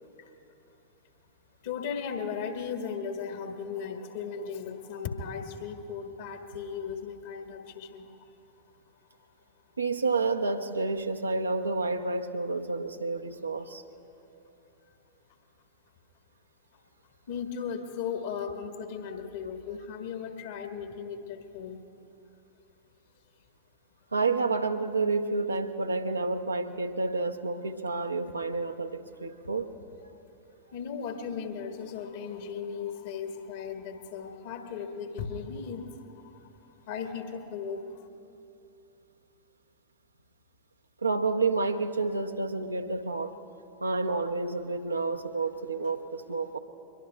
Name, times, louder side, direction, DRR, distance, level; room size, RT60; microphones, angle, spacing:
voice 1, 1.6-8.2 17.3-21.9 30.7-36.3 36.9-38.1, left 6 dB, 55° left, 5 dB, 1.4 m, -36 dB
voice 2, 9.8-13.8 24.1-29.7 41.0-43.3 43.8-46.6, right 3 dB, 80° right, 6 dB, 0.7 m, -29 dB
23.5 x 22.0 x 2.3 m, 2.7 s
figure-of-eight pair, 90°, 0 cm